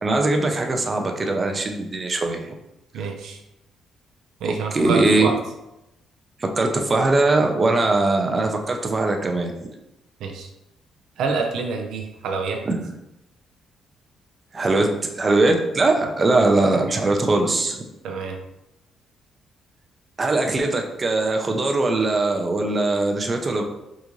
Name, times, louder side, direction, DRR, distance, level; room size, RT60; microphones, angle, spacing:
voice 1, 0.0-2.5 4.4-5.3 6.4-9.5 12.7-12.8 14.5-14.9 15.1-17.8 20.2-23.6, right 2 dB, 30° right, 3 dB, 0.5 m, -21 dB
voice 2, 2.9-3.4 4.4-5.3 10.2-10.5 11.2-12.6 16.0-16.1 18.0-18.4, right 4 dB, 80° right, 3 dB, 0.4 m, -27 dB
3.7 x 2.5 x 3.0 m, 0.89 s
cardioid pair, 90°, 0 cm